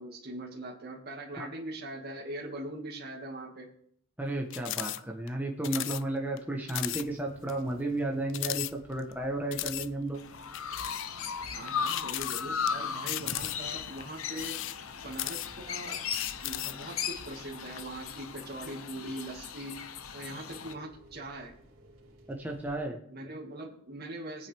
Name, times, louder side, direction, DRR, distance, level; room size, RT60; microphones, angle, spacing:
voice 1, 0.0-3.7 11.4-14.7 15.0-16.0 16.4-19.9 20.1-21.5 23.1-24.5, right 1 dB, 45° right, -2 dB, 2.0 m, -41 dB
voice 2, 4.2-10.2 22.3-23.0, right 2 dB, 10° right, 0 dB, 1.1 m, -33 dB
sound 1, 4.5-5.0 5.3-5.4 5.6-6.0 6.4-6.5 6.7-7.0 7.5-7.6 8.3-9.1 9.5-9.9 10.5-11.1 11.8-12.7 13.1-13.8 14.3-15.7 16.1-16.8, left 16 dB, 60° left, 0.4 m, -35 dB
sound 2, 5.7-22.8, right 1 dB, 80° right, 3.2 m, -56 dB
Chirp tweet, 10.1-20.7, left 6 dB, 80° left, 0.8 m, -37 dB
19.5 x 9.2 x 3.5 m, 0.64 s
head